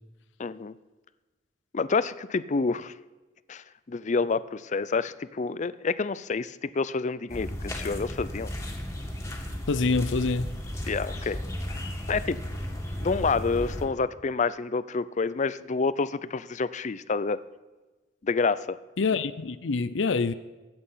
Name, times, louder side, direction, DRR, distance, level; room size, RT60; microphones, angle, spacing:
voice 1, 0.4-0.7 1.7-2.9 3.5-8.5 10.9-11.4 11.7-11.8 12.1-12.4 13.0-17.4 18.2-18.8, left 4 dB, 40° left, 16 dB, 0.5 m, -28 dB
sound 1, 7.3-13.9, equal, 15° left, 2.1 m, -34 dB
voice 2, 9.7-10.5 19.0-20.3, left 4 dB, 90° left, 13 dB, 0.6 m, -26 dB
22.0 x 8.9 x 5.7 m, 1.2 s
head